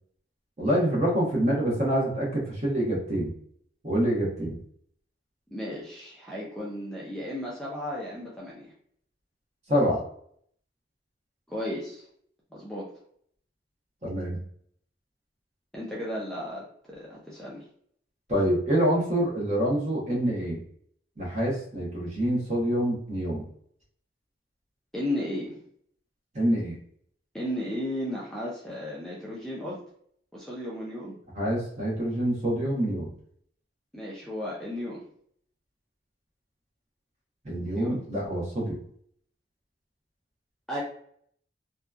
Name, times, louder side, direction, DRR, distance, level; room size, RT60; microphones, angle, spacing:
voice 1, 0.6-3.3 3.8-4.6 9.7-10.0 14.0-14.4 18.3-20.6 21.2-23.5 26.3-26.8 31.3-33.1 37.4-38.8, equal, 40° right, -4 dB, 0.9 m, -26 dB
voice 2, 5.5-8.7 11.5-12.0 12.5-12.8 15.7-17.6 24.9-25.6 27.3-29.8 30.3-31.1 33.9-35.0 37.7-38.0 40.7-40.8, left 1 dB, 5° left, -6 dB, 0.4 m, -34 dB
2.7 x 2.2 x 2.3 m, 0.64 s
head